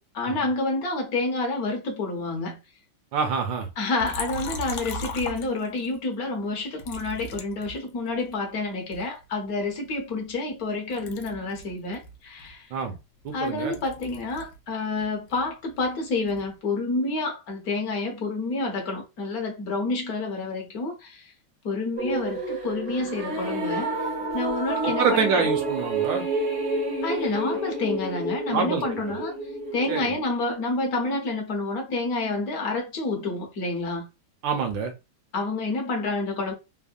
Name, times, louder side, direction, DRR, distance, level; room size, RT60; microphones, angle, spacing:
voice 1, 0.0-2.6 3.8-12.8 13.3-21.3 21.6-23.9 24.3-25.5 27.0-29.3 29.7-34.1 35.3-36.5, left 3 dB, 60° left, 1.0 m, -29 dB
voice 2, 3.1-3.7 12.7-13.0 13.2-13.7 24.8-26.3 28.5-28.8 29.9-30.2 34.4-34.9, right 5 dB, 75° right, 1.3 m, -26 dB
Liquid, 4.0-6.0 6.8-8.3 8.9-10.7 10.9-14.6 14.9-16.5, left 2 dB, 80° left, 1.4 m, -38 dB
sound 1, 22.0-30.2, right 2 dB, 55° right, 0.7 m, -29 dB
3.4 x 2.0 x 2.4 m
omnidirectional pair, 2.3 m